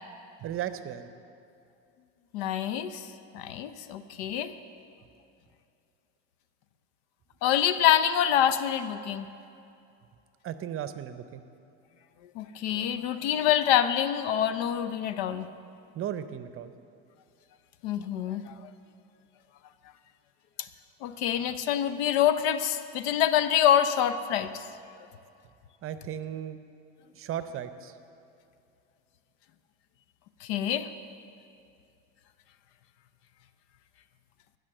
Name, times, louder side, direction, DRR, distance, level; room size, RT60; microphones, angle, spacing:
voice 1, 0.4-1.1 10.4-11.4 15.9-16.7 25.8-26.6 27.1-27.9, right 10 dB, 40° right, 11 dB, 0.7 m, -35 dB
voice 2, 2.3-4.5 7.4-9.3 12.3-15.5 17.8-18.7 20.6-20.7 21.0-24.7 30.4-30.9, left 10 dB, 80° left, 12 dB, 0.7 m, -26 dB
15.0 x 6.6 x 6.6 m, 2.6 s
supercardioid pair, 105°, 33 cm